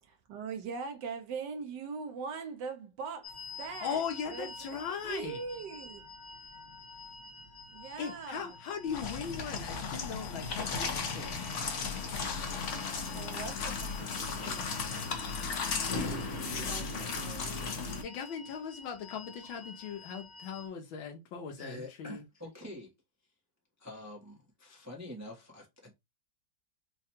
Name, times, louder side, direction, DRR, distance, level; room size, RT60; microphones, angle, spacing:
voice 1, 0.0-4.8 5.0-6.0 7.7-8.5 13.1-14.8 16.0-17.9, right 5 dB, 70° right, 1.3 m, -42 dB
sound 1, 3.2-20.7, left 4 dB, 30° left, 1.2 m, -50 dB
voice 2, 3.6-5.4 8.0-11.3 18.0-22.2, left 7 dB, 80° left, 1.6 m, -39 dB
sound 2, 8.9-18.0, left 4 dB, 55° left, 0.8 m, -35 dB
voice 3, 21.6-22.9 23.8-25.9, left 1 dB, 15° right, 0.5 m, -46 dB
4.8 x 2.3 x 2.9 m
omnidirectional pair, 2.2 m